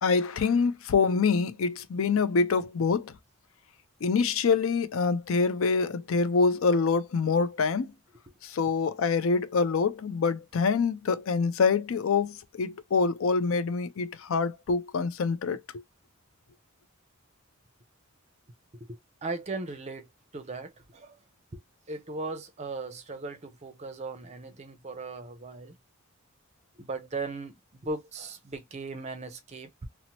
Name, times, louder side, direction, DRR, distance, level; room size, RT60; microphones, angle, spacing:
voice 1, 0.0-3.1 4.0-7.9 8.4-15.8, left 4 dB, 70° left, 0.4 m, -25 dB
voice 2, 18.7-21.2 21.5-21.6 21.9-25.8 26.8-27.5 27.8-29.9, right 3 dB, 30° right, 0.5 m, -38 dB
2.8 x 2.0 x 2.9 m
head